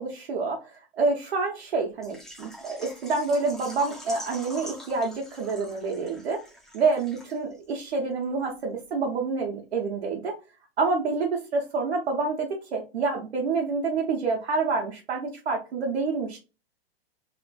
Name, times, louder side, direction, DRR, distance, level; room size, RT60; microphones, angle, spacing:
voice 1, 0.0-6.4 6.7-10.3 10.8-16.4, right 4 dB, 80° right, -1 dB, 0.9 m, -28 dB
Water / Liquid, 2.0-7.6 7.9-8.0 8.4-8.5, equal, ahead, 0.4 m, -44 dB
2.9 x 2.5 x 2.2 m, 0.30 s
hypercardioid pair, 115°, 31 cm